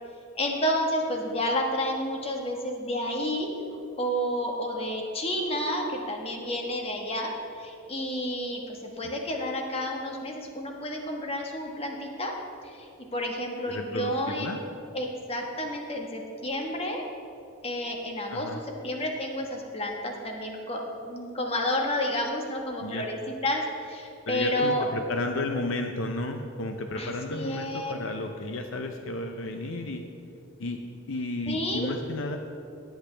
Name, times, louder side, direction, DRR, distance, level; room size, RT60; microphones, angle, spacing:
voice 1, 0.3-3.5 4.0-12.4 12.6-14.5 14.9-17.0 17.6-24.9 26.9-27.9 31.5-31.9, left 1 dB, 30° left, 1 dB, 1.3 m, -30 dB
voice 2, 13.7-14.1 14.4-14.6 18.3-18.6 22.8-23.0 24.3-30.0 30.6-30.8 31.1-32.4, left 2 dB, 65° left, 5 dB, 0.6 m, -32 dB
19.0 x 8.0 x 3.3 m, 2.7 s
head